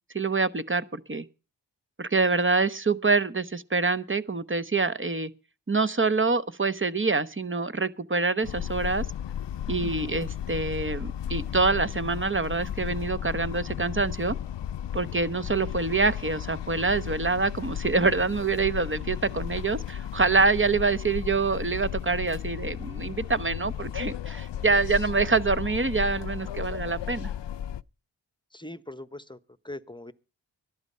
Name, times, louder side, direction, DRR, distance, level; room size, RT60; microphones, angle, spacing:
voice 1, 0.1-1.3 2.0-5.3 5.7-9.0 9.7-14.4 14.9-27.3, right 4 dB, 25° right, 1.0 m, -26 dB
sound 1, 8.4-27.8, left 10 dB, 70° left, 0.6 m, -34 dB
voice 2, 28.5-29.4 29.6-30.1, left 1 dB, 10° left, 1.0 m, -40 dB
14.0 x 11.5 x 5.5 m
cardioid pair, 55°, 44 cm